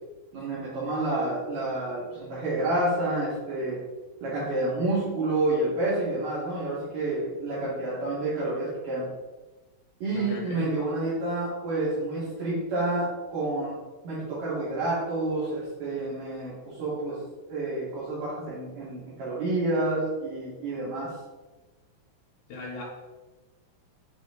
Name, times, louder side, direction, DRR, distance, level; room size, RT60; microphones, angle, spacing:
voice 1, 0.3-3.8 4.2-9.1 10.0-13.8 14.0-17.2 17.5-21.1, right 2 dB, 65° right, -10 dB, 3.2 m, -29 dB
voice 2, 10.1-10.8 22.5-22.8, left 2 dB, 90° left, -4 dB, 2.8 m, -37 dB
8.1 x 3.1 x 3.9 m, 1.2 s
omnidirectional pair, 4.1 m